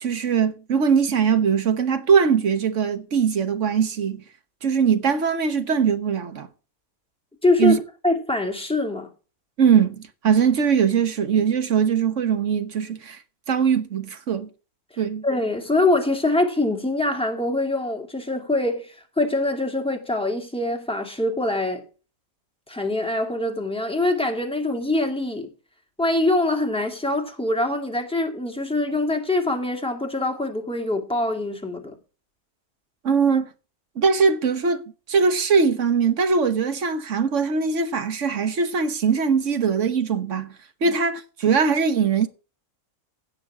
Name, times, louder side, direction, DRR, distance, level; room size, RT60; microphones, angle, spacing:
voice 1, 0.0-4.2 4.6-6.5 7.6-7.8 9.6-13.2 13.5-14.5 15.0-15.2 33.0-33.5 34.0-40.5 40.8-42.3, right 6 dB, 60° right, 1.4 m, -21 dB
voice 2, 7.4-7.8 8.0-9.1 15.2-21.8 22.7-25.5 26.0-32.0 40.8-40.9, left 2 dB, 5° left, 2.2 m, -24 dB
16.0 x 6.5 x 4.8 m
omnidirectional pair, 1.5 m